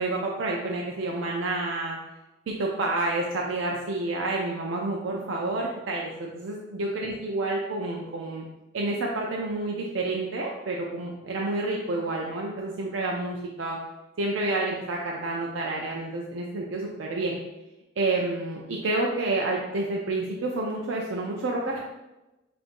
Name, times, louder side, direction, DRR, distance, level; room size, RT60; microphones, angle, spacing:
voice 1, 0.0-2.0 2.5-8.4 8.7-13.8 14.2-17.4 18.0-21.8, right 2 dB, 90° right, -1 dB, 0.4 m, -29 dB
5.1 x 2.5 x 2.5 m, 1.0 s
head